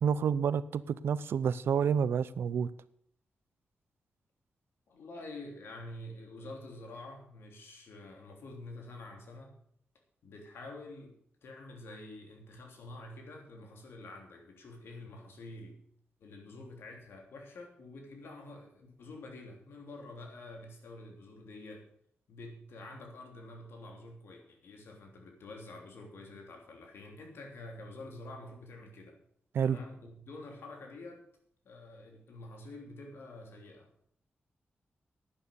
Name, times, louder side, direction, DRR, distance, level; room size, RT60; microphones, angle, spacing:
voice 1, 0.0-2.7 29.5-29.8, right 7 dB, 85° right, 17 dB, 0.6 m, -29 dB
voice 2, 4.9-9.6 10.2-11.1 11.4-15.8 16.2-21.9 22.3-29.2 29.6-31.2 31.6-33.9, left 2 dB, 85° left, 2 dB, 3.2 m, -48 dB
11.0 x 9.1 x 7.0 m, 0.66 s
wide cardioid pair, 150°, 4 cm